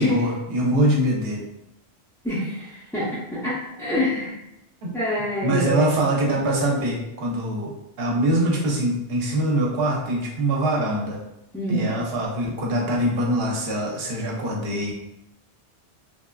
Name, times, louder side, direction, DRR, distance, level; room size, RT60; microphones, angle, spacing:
voice 1, 0.0-1.4 4.8-4.9 5.4-11.2 11.7-14.9, right 1 dB, 70° right, -1 dB, 0.9 m, -23 dB
voice 2, 2.2-4.4 4.9-6.2 11.5-11.9, left 1 dB, 5° left, -11 dB, 0.4 m, -26 dB
3.2 x 2.3 x 2.2 m, 0.87 s
omnidirectional pair, 1.1 m